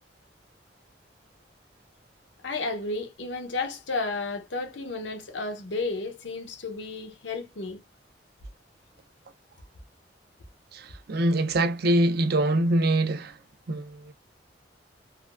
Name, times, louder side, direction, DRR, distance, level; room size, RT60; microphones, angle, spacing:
voice 1, 2.4-7.8, left 3 dB, 80° left, 0.7 m, -32 dB
voice 2, 10.7-13.4 13.7-14.1, right 1 dB, 60° right, 0.5 m, -24 dB
3.4 x 2.2 x 2.3 m
head